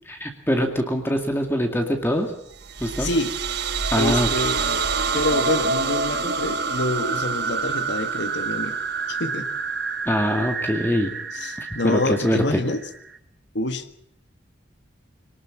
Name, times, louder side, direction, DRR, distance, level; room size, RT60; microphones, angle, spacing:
voice 1, 0.2-2.3 2.8-3.1 3.9-4.3 10.1-11.1 11.6-12.6, equal, 10° left, 4 dB, 2.2 m, -23 dB
sound 1, 2.5-13.2, right 4 dB, 55° right, 1.5 m, -27 dB
voice 2, 3.0-3.3 4.0-4.8 5.1-8.8 9.1-9.5 11.3-12.8 13.5-13.9, left 2 dB, 65° left, 9 dB, 1.6 m, -26 dB
24.5 x 19.0 x 7.3 m, 0.70 s
head